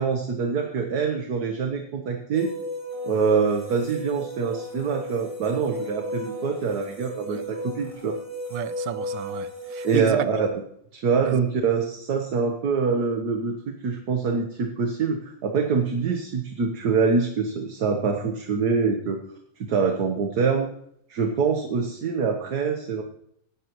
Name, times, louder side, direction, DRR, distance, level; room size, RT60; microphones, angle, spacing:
voice 1, 0.0-2.5 3.0-8.1 9.8-10.6 10.9-19.2 19.6-20.7 21.1-23.0, right 5 dB, 65° right, 4 dB, 1.7 m, -25 dB
sound 1, 2.3-10.0, equal, 15° left, 2.3 m, -34 dB
voice 2, 8.5-10.2 11.2-11.4, right 11 dB, 85° right, 14 dB, 1.5 m, -31 dB
17.0 x 11.5 x 3.1 m, 0.70 s
omnidirectional pair, 1.9 m